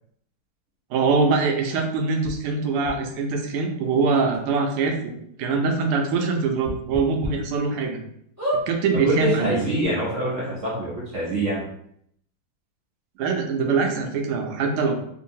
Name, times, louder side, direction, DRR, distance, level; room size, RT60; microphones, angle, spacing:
voice 1, 0.9-8.0 8.7-9.6 13.2-14.9, right 4 dB, 85° right, 3 dB, 1.6 m, -23 dB
sound 1, 2.2-2.3 2.8-2.9 3.9-4.0 4.3-4.4 4.8-4.9 6.6-7.3 7.8-7.9 8.4-8.6 9.5-9.6 9.8-9.9, equal, 25° right, 0.3 m, -28 dB
voice 2, 9.0-11.6, right 1 dB, 60° right, -6 dB, 0.8 m, -25 dB
3.7 x 2.7 x 2.7 m, 0.69 s
omnidirectional pair, 2.4 m